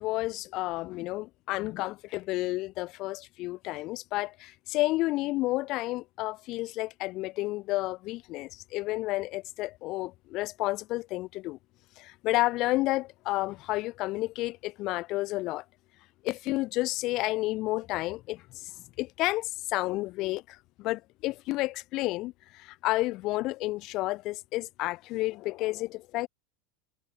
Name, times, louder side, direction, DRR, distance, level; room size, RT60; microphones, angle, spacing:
voice 1, 0.0-11.6 12.0-15.6 16.2-18.4 19.0-26.3, left 19 dB, 50° left, 1.4 m, -31 dB
hypercardioid pair, 105°, 0 cm